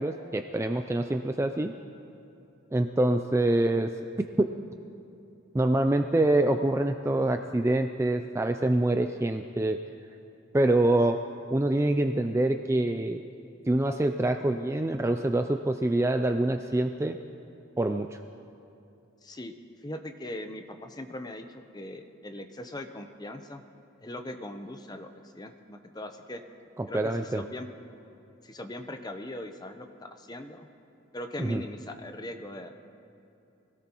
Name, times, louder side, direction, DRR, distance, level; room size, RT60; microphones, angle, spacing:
voice 1, 0.0-1.7 2.7-3.9 4.4-4.5 5.5-9.8 10.5-11.2 11.5-13.2 13.7-17.2 17.8-18.2 26.8-27.4 31.4-31.6, right 1 dB, 15° right, 6 dB, 0.3 m, -25 dB
voice 2, 19.2-19.5 19.8-23.6 24.0-25.1 25.3-26.4 26.9-27.7 28.4-29.9 30.2-30.7 31.1-32.7, left 1 dB, 20° left, 6 dB, 0.7 m, -40 dB
24.5 x 17.0 x 3.0 m, 2.8 s
head